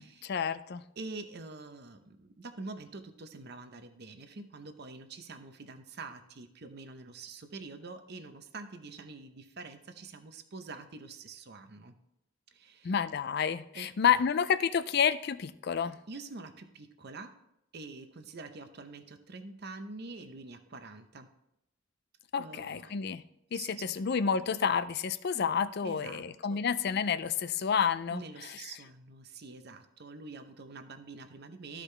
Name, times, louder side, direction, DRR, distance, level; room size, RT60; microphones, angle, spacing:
voice 1, 0.0-0.8 12.8-16.0 22.3-23.2 23.5-28.2, left 7 dB, 50° left, 15 dB, 0.4 m, -29 dB
voice 2, 1.0-12.0 12.5-12.9 13.7-14.2 16.1-17.3 17.7-21.3 22.4-23.1 23.5-24.0 25.8-26.6 28.1-31.8, right 3 dB, 50° right, 9 dB, 0.7 m, -46 dB
13.5 x 5.0 x 3.3 m, 0.82 s
head